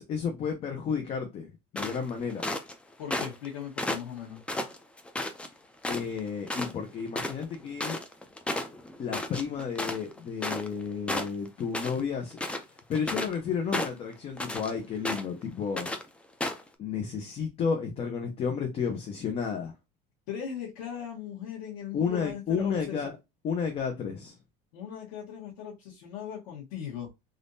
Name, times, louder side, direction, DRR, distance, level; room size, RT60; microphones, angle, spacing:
voice 1, 0.0-2.4 5.9-8.0 9.0-12.4 12.9-15.9 16.8-19.7 21.9-23.1 23.4-24.3, left 6 dB, 35° left, 0.7 m, -32 dB
sound 1, 1.8-2.7 3.1-3.5 3.8-5.5 5.8-6.2 6.5-6.7 7.0-10.8 11.1-12.0 12.3-13.4 13.7-14.7 15.0-15.4 15.8-16.0 16.4-16.7, left 1 dB, 5° left, 0.4 m, -33 dB
voice 2, 3.0-4.4 20.3-23.0 24.7-27.1, left 8 dB, 90° left, 1.3 m, -39 dB
3.5 x 2.5 x 2.6 m
cardioid pair, 150°, 18 cm